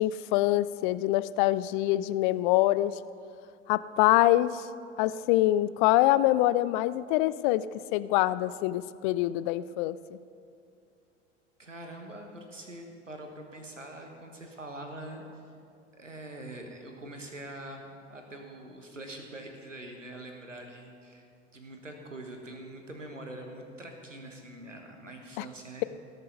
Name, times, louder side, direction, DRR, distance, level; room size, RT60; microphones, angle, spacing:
voice 1, 0.0-2.9 3.7-4.7 5.0-7.6 7.9-10.2 25.4-25.5, left 15 dB, 45° left, 16 dB, 0.4 m, -25 dB
voice 2, 11.6-15.5 15.9-21.3 21.5-25.8, right 1 dB, 90° right, 3 dB, 1.4 m, -44 dB
17.5 x 6.7 x 5.3 m, 2.5 s
figure-of-eight pair, 75°, 37 cm